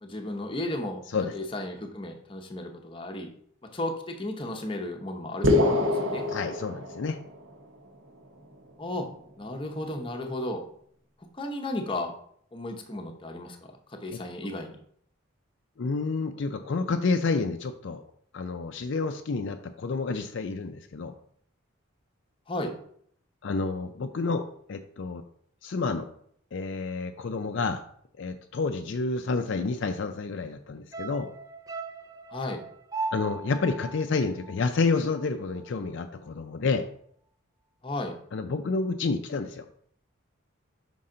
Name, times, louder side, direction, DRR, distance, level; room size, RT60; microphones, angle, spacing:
voice 1, 0.0-1.0 1.3-3.3 3.7-5.5 5.8-6.2 8.8-9.1 9.4-10.6 11.3-12.1 12.5-13.6 13.9-14.8 22.5-22.7 32.3-32.6 37.8-38.1, left 1 dB, 25° left, 4 dB, 0.7 m, -34 dB
sound 1, 5.4-7.4, left 2 dB, 55° right, 1.0 m, -24 dB
voice 2, 6.3-7.2 14.1-14.5 15.8-18.1 18.3-21.1 23.4-25.2 25.6-26.1 26.5-27.8 28.2-31.3 33.1-36.9 38.3-39.7, left 4 dB, 55° left, 7 dB, 0.4 m, -29 dB
sound 2, 30.9-35.3 35.6-35.7, right 4 dB, 15° right, 0.3 m, -38 dB
5.5 x 5.3 x 3.8 m, 0.65 s
head